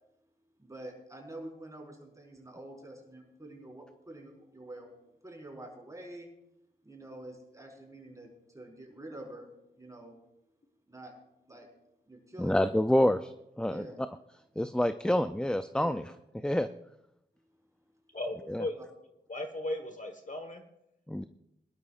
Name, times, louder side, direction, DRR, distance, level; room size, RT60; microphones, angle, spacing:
voice 1, 0.6-5.0 5.2-6.3 6.8-10.2 10.9-11.1 11.5-11.7 12.1-12.6 13.6-14.0 15.8-16.0 18.8-18.9, right 1 dB, 15° right, -1 dB, 4.7 m, -47 dB
voice 2, 12.4-13.9 14.6-16.0 16.4-16.7 18.5-18.6 21.1-21.3, left 1 dB, 5° left, 10 dB, 0.4 m, -27 dB
voice 3, 18.1-18.8 19.3-20.6, left 1 dB, 45° left, 6 dB, 1.4 m, -36 dB
23.0 x 12.5 x 2.5 m, 0.83 s
wide cardioid pair, 65°, 18 cm